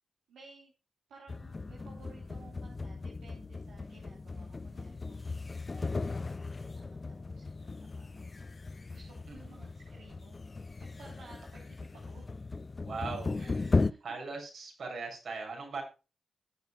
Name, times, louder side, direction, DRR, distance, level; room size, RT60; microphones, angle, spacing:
voice 1, 0.3-0.7 1.1-5.2 5.7-8.3 8.9-10.4 10.8-12.3 13.3-14.0, right 4 dB, 85° right, -3 dB, 3.8 m, -56 dB
sound 1, 1.3-13.9, left 3 dB, 45° left, 0.6 m, -37 dB
voice 2, 9.3-9.6 12.8-13.7 14.0-15.8, right 4 dB, 70° right, 1 dB, 6.9 m, -40 dB
20.5 x 6.9 x 2.4 m, 0.30 s
supercardioid pair, 40°, 0 cm